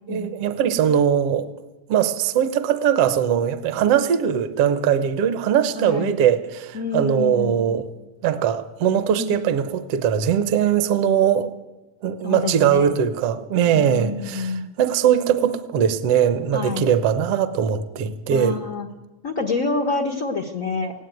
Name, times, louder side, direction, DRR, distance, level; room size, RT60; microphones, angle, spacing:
voice 1, 0.1-1.4 1.9-7.9 8.2-11.5 12.0-18.6, right 9 dB, 65° right, 11 dB, 1.8 m, -20 dB
voice 2, 5.7-6.2 6.7-7.6 9.2-9.5 12.2-12.9 13.7-14.7 16.5-16.9 18.3-18.9 19.2-20.9, left 4 dB, 75° left, 4 dB, 0.7 m, -27 dB
19.0 x 16.5 x 9.2 m, 1.1 s
omnidirectional pair, 3.3 m